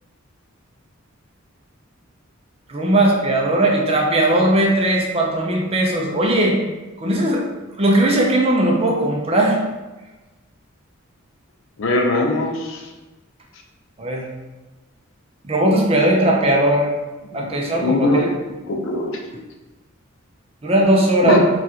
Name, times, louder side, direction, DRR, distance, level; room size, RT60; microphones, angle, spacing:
voice 1, 2.7-6.6 7.0-7.5 7.8-9.6 14.0-14.3 15.4-16.9 17.3-18.3 20.6-21.4, right 1 dB, 30° right, 0 dB, 0.5 m, -18 dB
voice 2, 11.8-12.8 17.3-17.5 17.8-18.2 18.8-19.1 21.2-21.4, left 2 dB, 70° left, 1 dB, 0.6 m, -20 dB
4.0 x 2.4 x 2.8 m, 1.1 s
head